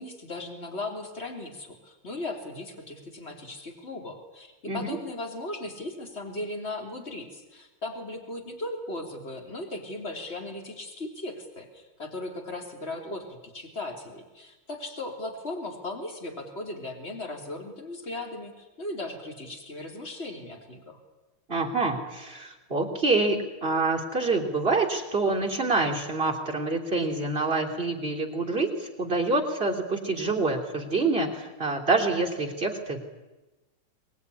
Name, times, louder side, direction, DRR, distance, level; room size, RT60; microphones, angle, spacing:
voice 1, 0.0-21.0, left 2 dB, 30° left, 2 dB, 3.6 m, -37 dB
voice 2, 4.7-5.0 21.5-33.0, right 3 dB, 25° right, -1 dB, 3.3 m, -26 dB
24.0 x 20.0 x 9.8 m, 1.1 s
omnidirectional pair, 2.4 m